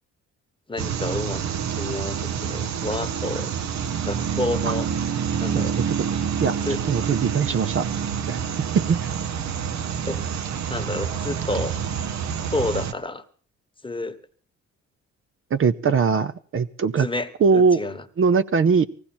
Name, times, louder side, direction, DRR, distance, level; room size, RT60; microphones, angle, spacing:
voice 1, 0.7-1.4 1.8-3.5 4.0-4.9 5.4-5.8 6.6-6.8 10.0-10.2 10.7-11.8 12.5-13.2 13.8-14.2 17.0-18.0, left 2 dB, 15° left, 8 dB, 1.3 m, -29 dB
sound 1, 0.8-12.9, right 7 dB, 65° right, 1.1 m, -27 dB
voice 2, 5.5-5.9 6.4-6.5 6.8-7.9 8.3-8.4 8.9-9.1 15.5-17.1 17.4-17.8 18.2-18.9, right 5 dB, 45° right, 11 dB, 0.7 m, -21 dB
19.0 x 16.0 x 4.4 m, 0.43 s
cardioid pair, 90°, 30 cm